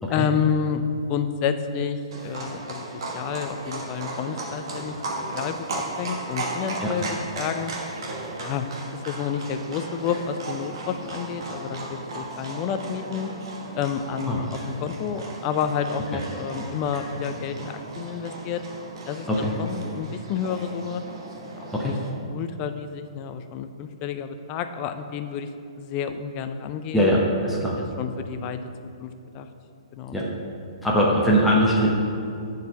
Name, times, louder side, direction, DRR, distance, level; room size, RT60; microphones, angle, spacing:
voice 1, 0.1-5.0 5.3-7.7 8.4-13.3 13.7-18.6 19.1-21.0 21.5-22.0 22.3-25.5 25.8-27.1 27.8-28.6 29.0-29.5 29.9-30.2, left 7 dB, 30° left, 9 dB, 0.4 m, -30 dB
Livestock farm animals working animals, 2.1-22.1, right 2 dB, 50° right, 1.4 m, -36 dB
voice 2, 26.9-27.8 30.1-30.3 30.8-31.9, equal, ahead, -5 dB, 0.9 m, -21 dB
6.8 x 4.7 x 6.7 m, 2.7 s
figure-of-eight pair, 120°, 3 cm